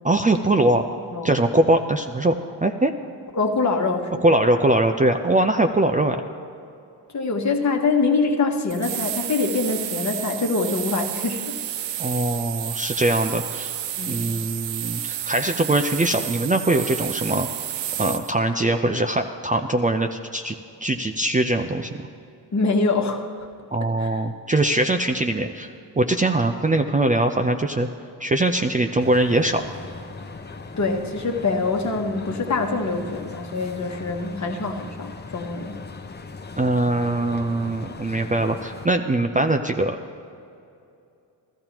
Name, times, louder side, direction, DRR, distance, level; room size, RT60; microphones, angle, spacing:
voice 1, 0.0-0.9 1.2-2.9 4.2-6.2 12.0-13.7 14.1-17.5 18.0-20.5 20.8-22.0 23.7-25.7 26.0-27.9 28.2-29.6 36.6-40.0, right 2 dB, 20° right, 5 dB, 0.5 m, -22 dB
voice 2, 3.3-4.3 7.1-11.6 14.0-14.3 22.5-23.5 24.0-24.2 30.8-35.8, left 3 dB, 40° left, 3 dB, 1.3 m, -24 dB
sound 1, 8.7-18.3, right 11 dB, 75° right, 0.6 m, -31 dB
sound 2, 29.0-38.9, left 4 dB, 25° left, 0.7 m, -39 dB
14.0 x 14.0 x 3.0 m, 2.5 s
cardioid pair, 65°, 44 cm